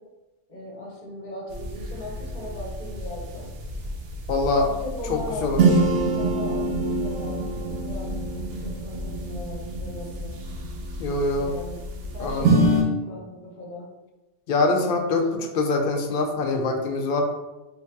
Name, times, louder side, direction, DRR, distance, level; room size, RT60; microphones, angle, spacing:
voice 1, 0.5-3.5 4.4-10.4 11.4-11.8 12.1-13.9 15.1-15.5, left 1 dB, 40° left, -4 dB, 1.0 m, -38 dB
sound 1, 1.5-12.8, right 2 dB, 80° right, 0.9 m, -26 dB
voice 2, 4.3-4.7 5.1-5.6 11.0-11.5 12.2-12.6 14.5-17.2, left 3 dB, 60° left, 3 dB, 0.6 m, -24 dB
4.5 x 2.7 x 2.2 m, 1.1 s
omnidirectional pair, 1.2 m